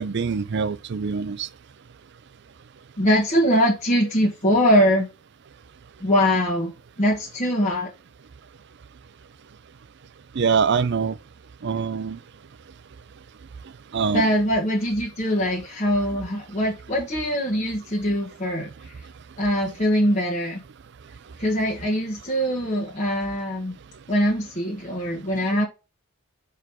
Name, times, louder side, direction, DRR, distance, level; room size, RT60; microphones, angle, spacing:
voice 1, 0.0-1.5 10.4-11.2 11.6-12.2 13.9-14.2, right 5 dB, 50° right, 0.4 m, -24 dB
voice 2, 3.0-5.1 6.0-7.9 14.1-19.0 19.4-20.6 21.4-23.7 24.1-25.7, equal, 35° left, 1.3 m, -22 dB
6.3 x 4.6 x 3.5 m
head